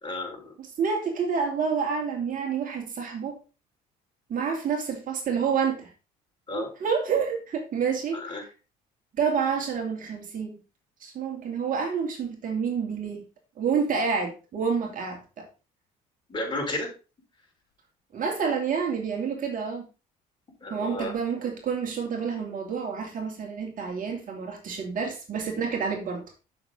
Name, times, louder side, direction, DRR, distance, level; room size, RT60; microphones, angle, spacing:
voice 1, 0.0-0.5 6.5-6.7 8.1-8.4 16.3-16.9 20.6-21.1, left 1 dB, 25° left, 4.5 m, -32 dB
voice 2, 0.8-3.4 4.3-5.9 6.5-8.4 9.2-10.6 11.0-13.2 13.6-15.5 18.1-19.9 20.7-26.2, right 6 dB, 50° right, 2.7 m, -28 dB
7.7 x 6.4 x 3.8 m
supercardioid pair, 70°, 18 cm